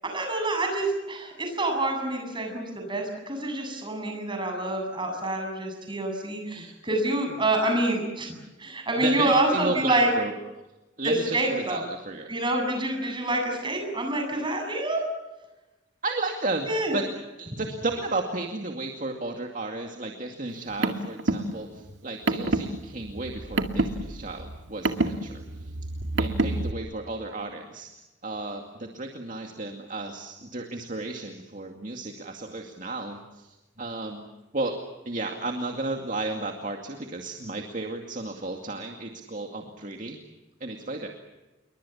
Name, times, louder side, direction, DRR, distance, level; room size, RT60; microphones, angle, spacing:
voice 1, 0.0-8.3 8.6-10.1 11.0-11.8 12.3-15.0 16.7-17.0, right 1 dB, 25° right, 4 dB, 7.8 m, -27 dB
voice 2, 9.0-10.3 11.0-12.3 16.0-17.1 17.4-25.7 26.2-27.9 28.2-34.2 34.5-34.8 35.1-40.2 40.6-41.1, right 2 dB, 45° right, 3 dB, 2.3 m, -33 dB
Car, 20.5-26.7, right 2 dB, 75° right, 2.1 m, -28 dB
29.0 x 23.5 x 7.2 m, 1.1 s
head